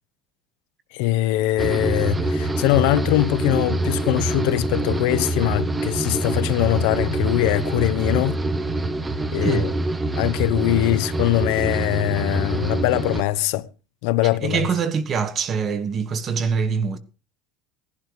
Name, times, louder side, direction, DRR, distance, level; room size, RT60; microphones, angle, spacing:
voice 1, 0.9-8.4 9.3-9.7 10.2-13.7 14.0-14.7, left 16 dB, 65° left, 1.1 m, -22 dB
sound 1, 1.6-13.2, right 2 dB, 10° right, 0.9 m, -25 dB
voice 2, 9.4-9.7 14.4-17.0, right 6 dB, 25° right, 1.5 m, -24 dB
17.5 x 11.5 x 4.9 m
cardioid pair, 165°, 0 cm